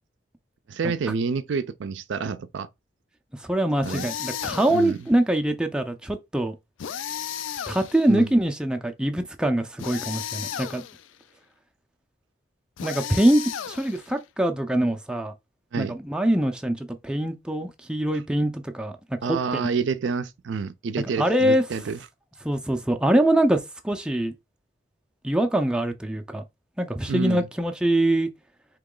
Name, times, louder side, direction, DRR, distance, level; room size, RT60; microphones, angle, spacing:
voice 1, 0.7-2.7 3.8-4.1 4.7-5.0 8.1-8.3 15.7-16.0 19.2-22.0 27.1-27.4, right 5 dB, 75° right, 0.4 m, -28 dB
voice 2, 3.3-6.6 7.7-10.8 12.8-15.3 15.8-19.7 21.0-21.6 22.4-24.3 25.2-26.4 26.8-28.3, right 1 dB, 5° right, 0.4 m, -24 dB
sound 1, 3.8-5.0 6.8-8.2 9.8-11.1 12.8-14.2, left 9 dB, 85° left, 0.4 m, -34 dB
3.8 x 2.9 x 3.7 m
head